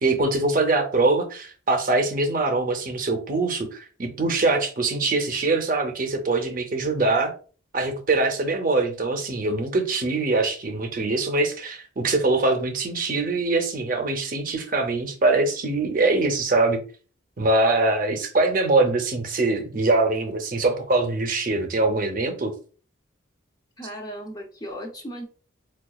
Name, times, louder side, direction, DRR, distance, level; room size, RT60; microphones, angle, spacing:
voice 1, 0.0-7.3 7.7-16.8 17.4-22.5, right 3 dB, 45° right, 5 dB, 0.6 m, -23 dB
voice 2, 23.8-25.3, equal, 20° left, 1 dB, 0.5 m, -36 dB
4.6 x 2.3 x 2.3 m, 0.38 s
head